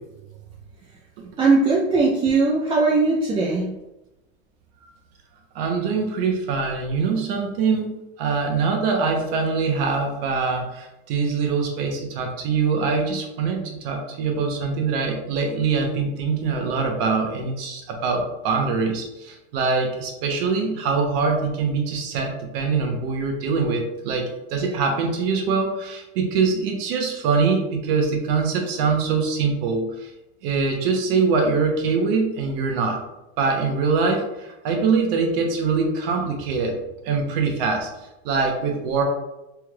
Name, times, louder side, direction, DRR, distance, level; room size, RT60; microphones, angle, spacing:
voice 1, 1.4-3.7, right 3 dB, 15° right, -3 dB, 0.3 m, -19 dB
voice 2, 5.5-7.9 8.2-30.1 30.4-33.0 33.4-36.8 37.0-37.9 38.2-39.0, right 4 dB, 65° right, 2 dB, 0.9 m, -23 dB
3.5 x 3.1 x 2.3 m, 0.95 s
supercardioid pair, 125°, 32 cm